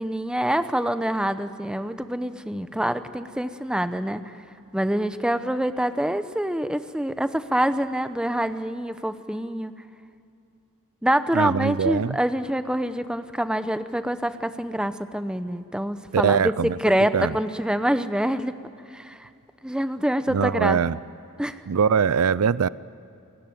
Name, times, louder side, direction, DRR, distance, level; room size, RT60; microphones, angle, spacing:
voice 1, 0.0-4.3 4.7-9.7 11.0-18.5 18.9-19.3 19.6-20.8 21.4-21.6, right 1 dB, 5° right, 11 dB, 0.7 m, -26 dB
voice 2, 11.3-12.2 16.1-16.8 17.1-17.3 20.3-21.0 21.7-22.7, right 6 dB, 85° right, 19 dB, 0.5 m, -22 dB
28.5 x 17.5 x 9.3 m, 2.7 s
head